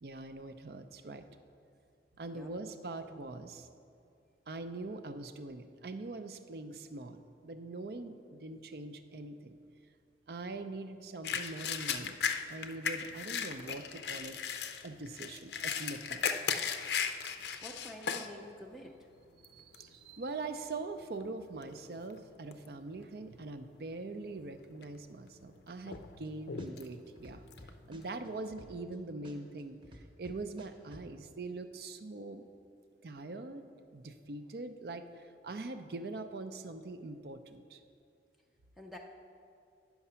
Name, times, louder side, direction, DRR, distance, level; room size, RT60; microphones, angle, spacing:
voice 1, 0.0-1.2 2.2-3.7 4.5-9.6 10.3-14.3 14.8-16.3 19.5-27.4 27.9-32.5 33.0-33.6 33.9-37.8, right 3 dB, 55° right, 9 dB, 0.5 m, -43 dB
sound 1, 11.2-18.3 18.8-18.9 19.4-19.8 20.5-20.7 21.0-22.2 22.5-23.0 23.4-23.5 24.4-25.0 25.3-28.4, left 7 dB, 65° left, 0.5 m, -37 dB
voice 2, 17.6-19.1 38.8-39.0, equal, ahead, 1 dB, 0.4 m, -48 dB
sound 2, 25.9-26.3 26.6-28.9 29.2-31.0, equal, 25° right, 0.9 m, -52 dB
9.5 x 5.9 x 5.6 m, 2.4 s
head